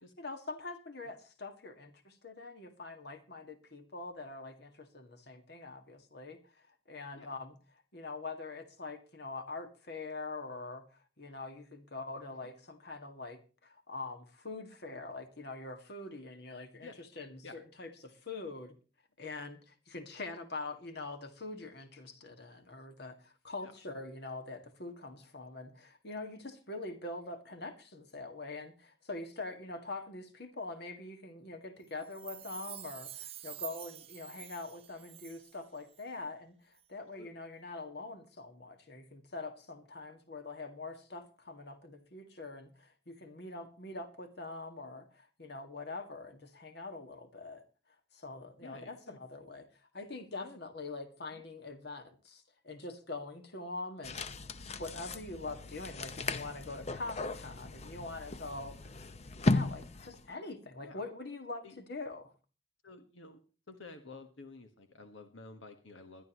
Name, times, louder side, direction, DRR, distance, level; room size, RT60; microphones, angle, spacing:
voice 1, 0.2-7.6 7.9-10.8 11.2-18.8 19.2-47.6 48.1-59.0 59.3-62.3, left 3 dB, 60° left, 6 dB, 2.0 m, -44 dB
Chime, 32.0-35.7 35.9-36.0, right 13 dB, 30° right, 0.6 m, -47 dB
voice 2, 48.6-49.2 50.4-50.6 51.3-51.4 60.8-61.0 61.6-61.8 62.8-63.4 63.7-66.2, left 3 dB, 85° left, 7 dB, 1.5 m, -51 dB
sound 1, 54.0-60.3, left 2 dB, 35° left, 0.7 m, -36 dB
21.0 x 12.0 x 3.1 m, 0.35 s
head